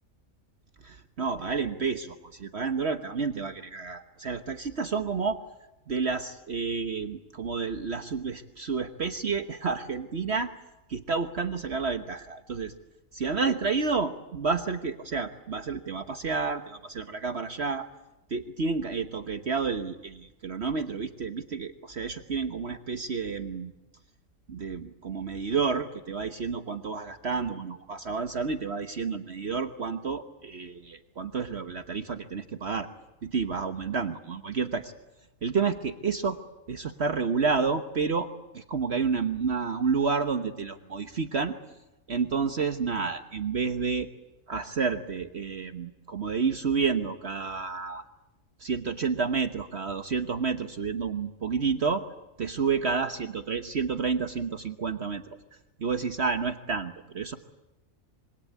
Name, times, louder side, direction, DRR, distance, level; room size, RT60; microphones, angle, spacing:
voice 1, 0.8-5.4 5.9-10.5 10.9-12.7 13.1-17.9 18.3-23.7 24.5-32.9 33.2-34.9 35.4-36.4 36.7-38.3 38.5-41.5 42.1-44.1 44.5-48.0 48.6-52.1 52.4-55.2 55.8-57.4, right 5 dB, 55° right, 8 dB, 1.4 m, -30 dB
26.5 x 24.0 x 8.5 m, 0.97 s
omnidirectional pair, 1.4 m